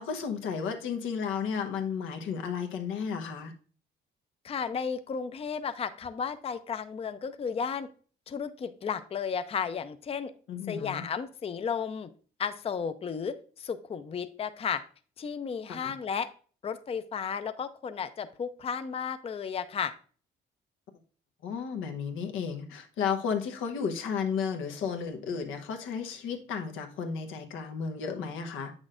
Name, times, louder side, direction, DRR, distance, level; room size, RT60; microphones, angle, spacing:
voice 1, 0.0-3.5 10.5-11.0 15.7-15.9 21.4-28.7, left 6 dB, 90° left, 0.9 m, -33 dB
voice 2, 4.4-7.9 8.3-10.3 10.7-12.1 12.4-14.8 15.2-16.3 16.6-19.9, left 6 dB, 30° left, 0.5 m, -33 dB
7.6 x 6.2 x 2.5 m
cardioid pair, 90°, 20 cm